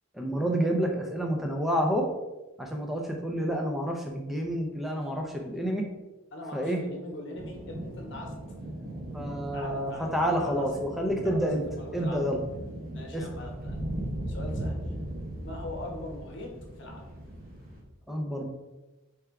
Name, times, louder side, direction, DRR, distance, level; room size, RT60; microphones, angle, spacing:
voice 1, 0.1-2.1 2.6-5.8 6.5-6.8 9.1-11.6 11.9-12.4 13.1-13.2 18.1-18.5, equal, ahead, 1 dB, 0.4 m, -29 dB
voice 2, 6.3-8.3 9.5-10.1 10.4-10.7 11.2-12.2 12.9-13.8 14.3-14.8 15.4-16.5 16.8-17.1, left 1 dB, 55° left, 1 dB, 1.0 m, -41 dB
sound 1, 7.3-17.8, right 1 dB, 40° right, 0.9 m, -38 dB
3.5 x 3.3 x 4.6 m, 1.1 s
head